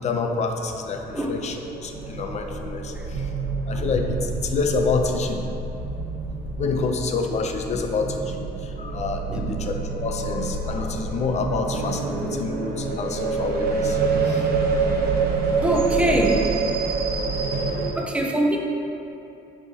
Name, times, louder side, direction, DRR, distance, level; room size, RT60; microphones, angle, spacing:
voice 1, 0.0-3.3 3.7-5.5 6.6-14.5 17.5-18.1, left 4 dB, 40° left, 4 dB, 0.6 m, -28 dB
sound 1, 1.0-17.9, right 4 dB, 65° right, 0.9 m, -27 dB
voice 2, 15.6-16.5 17.9-18.6, right 1 dB, 5° right, 0 dB, 0.7 m, -23 dB
9.2 x 4.9 x 2.8 m, 2.8 s
cardioid pair, 110°, 17 cm